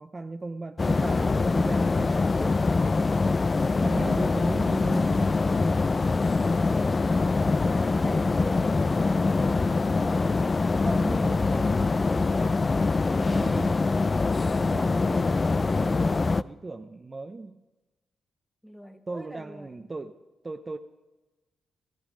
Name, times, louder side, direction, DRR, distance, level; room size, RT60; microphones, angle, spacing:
voice 1, 0.0-2.8 3.8-6.4 7.5-8.5 10.8-12.6 13.1-13.8 14.5-17.6 19.1-20.8, right 3 dB, 35° right, 7 dB, 0.6 m, -38 dB
sound 1, 0.8-16.4, left 3 dB, 35° left, 0.3 m, -24 dB
voice 2, 7.6-8.9 18.6-19.9, equal, ahead, 8 dB, 1.2 m, -44 dB
14.0 x 13.0 x 5.2 m, 1.1 s
supercardioid pair, 45°, 0 cm